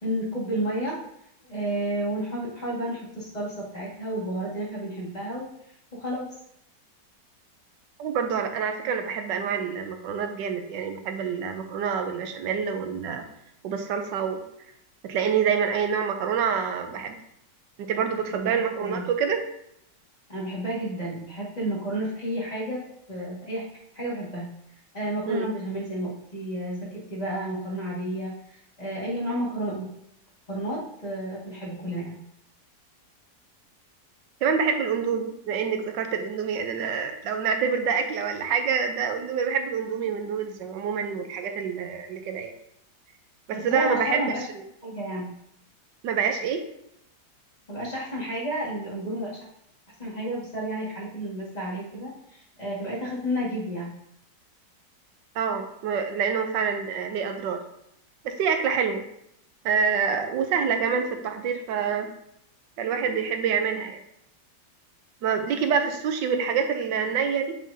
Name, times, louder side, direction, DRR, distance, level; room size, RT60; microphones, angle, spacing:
voice 1, 0.0-1.0 1.5-5.5 5.9-6.2 18.3-19.0 20.3-22.8 23.1-23.6 23.9-24.5 24.9-29.9 30.5-32.2 43.5-44.4 44.8-45.3 47.7-49.4 50.0-53.9, right 1 dB, 25° left, -6 dB, 1.8 m, -31 dB
voice 2, 8.0-13.2 13.6-14.4 15.0-17.2 17.8-19.4 25.3-25.5 34.4-42.5 43.5-44.2 44.5-44.6 46.0-46.6 55.3-57.6 58.2-59.0 59.6-62.1 62.8-64.0 65.2-67.6, right 6 dB, 85° right, 6 dB, 1.3 m, -26 dB
7.4 x 4.9 x 2.7 m, 0.75 s
omnidirectional pair, 1.9 m